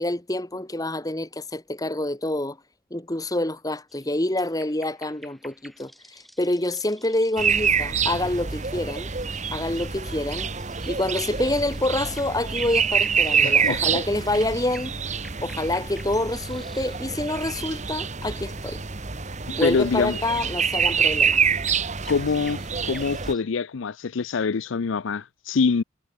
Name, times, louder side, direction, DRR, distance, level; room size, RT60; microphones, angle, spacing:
voice 1, 0.0-2.6 2.9-9.1 9.5-10.5 10.9-14.9 15.4-18.8 19.5-21.4, left 1 dB, 20° left, 1.5 m, -27 dB
sound 1, 3.9-17.1 17.4-17.8 19.5-23.4, equal, ahead, 3.8 m, -50 dB
sound 2, 7.4-23.3, right 6 dB, 35° right, 1.3 m, -26 dB
voice 2, 13.4-14.0 19.6-20.2 22.1-25.8, left 5 dB, 70° left, 0.5 m, -25 dB
head